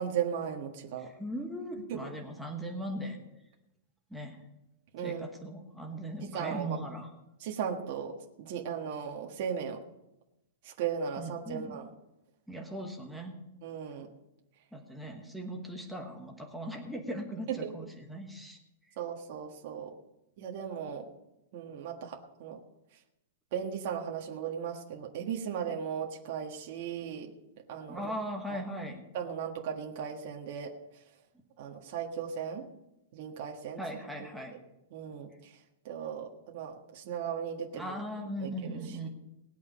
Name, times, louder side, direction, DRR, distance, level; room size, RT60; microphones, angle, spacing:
voice 1, 0.0-1.1 1.9-2.0 4.9-5.3 6.2-6.8 7.4-8.1 8.4-9.8 10.6-11.8 13.6-14.1 17.5-17.7 19.0-19.9 20.4-21.1 21.5-22.6 23.5-27.3 27.7-28.1 28.5-28.6 29.1-30.7 31.6-32.7 33.1-33.8 34.9-35.6 35.8-37.9 38.4-39.1, right 8 dB, 40° right, 1 dB, 1.5 m, -37 dB
voice 2, 1.0-3.2 4.1-4.4 5.0-7.1 11.2-11.7 12.5-13.4 14.7-18.6 27.9-29.0 33.8-34.6 37.7-39.1, right 1 dB, ahead, 1 dB, 1.2 m, -39 dB
19.0 x 8.5 x 5.3 m, 0.91 s
supercardioid pair, 180°, 0 cm